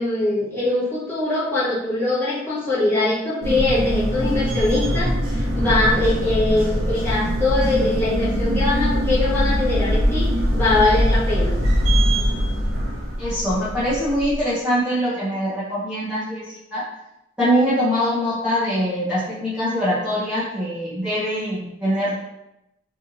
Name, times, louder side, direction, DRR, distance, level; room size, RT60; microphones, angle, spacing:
voice 1, 0.0-10.3 10.5-11.5, left 2 dB, 10° left, -11 dB, 1.3 m, -22 dB
sound 1, 3.4-14.4, equal, 85° right, 0.8 m, -22 dB
voice 2, 13.2-16.8 17.4-22.2, equal, 5° right, -12 dB, 0.8 m, -23 dB
3.1 x 2.6 x 2.7 m, 0.87 s
head